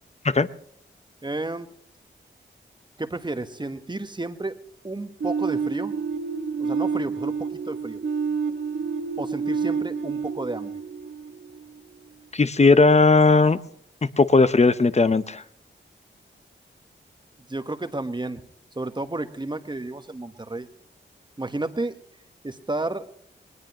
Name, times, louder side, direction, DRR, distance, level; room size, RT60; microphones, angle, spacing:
voice 1, 1.2-1.7 3.0-4.6 4.8-6.0 6.6-8.0 9.2-10.7 17.5-18.4 18.7-20.7 21.4-22.0 22.4-23.1, right 2 dB, 25° right, 9 dB, 1.3 m, -31 dB
sound 1, 5.2-12.0, right 5 dB, 70° right, 1.8 m, -29 dB
voice 2, 12.3-13.6 14.2-15.4, left 3 dB, 35° left, 13 dB, 0.8 m, -17 dB
20.0 x 19.5 x 3.0 m, 0.66 s
cardioid pair, 55°, 20 cm